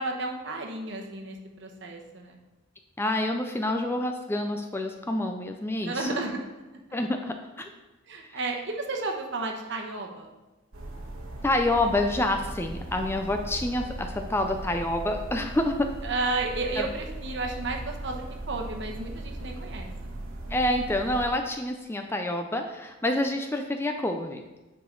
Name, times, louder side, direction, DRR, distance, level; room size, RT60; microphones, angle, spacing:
voice 1, 0.0-2.4 5.8-6.4 8.1-10.3 16.0-19.9, right 3 dB, 60° right, 2 dB, 1.0 m, -32 dB
voice 2, 3.0-6.1 6.9-7.7 8.3-8.5 11.4-15.9 16.8-16.9 20.5-24.4, left 1 dB, 10° left, 5 dB, 0.4 m, -28 dB
sound 1, 10.7-21.3, right 1 dB, 85° right, 1.2 m, -38 dB
9.0 x 5.0 x 3.8 m, 1.1 s
head